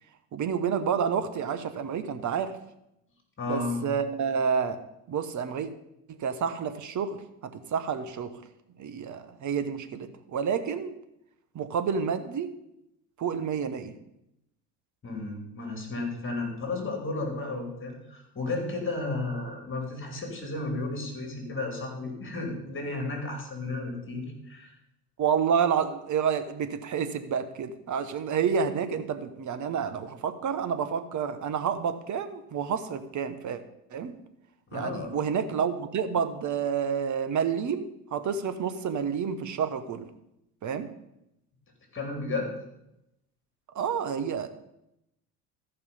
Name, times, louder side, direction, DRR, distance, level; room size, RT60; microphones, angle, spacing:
voice 1, 0.3-2.6 3.5-4.8 5.1-5.7 6.1-8.3 8.8-10.9 11.5-12.5 13.2-13.9 25.2-33.6 33.9-34.1 34.7-40.1 40.6-40.9 43.7-44.5, right 7 dB, 40° right, 11 dB, 1.2 m, -29 dB
voice 2, 3.4-3.8 15.0-24.8 34.7-35.1 41.9-42.5, left 2 dB, 25° left, 2 dB, 3.5 m, -33 dB
14.0 x 5.7 x 5.5 m, 0.84 s
hypercardioid pair, 80°, 46 cm